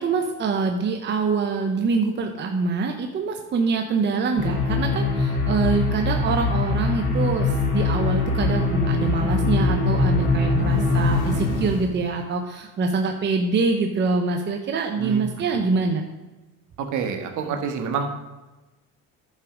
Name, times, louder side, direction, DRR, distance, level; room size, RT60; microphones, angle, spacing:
voice 1, 0.0-16.0, right 4 dB, 30° right, 4 dB, 0.9 m, -25 dB
sound 1, 4.4-11.8, left 3 dB, 70° left, 2.9 m, -22 dB
voice 2, 15.0-15.6 16.8-18.1, right 5 dB, 55° right, 5 dB, 1.6 m, -28 dB
11.0 x 6.0 x 5.1 m, 1.1 s
cardioid pair, 125°, 35 cm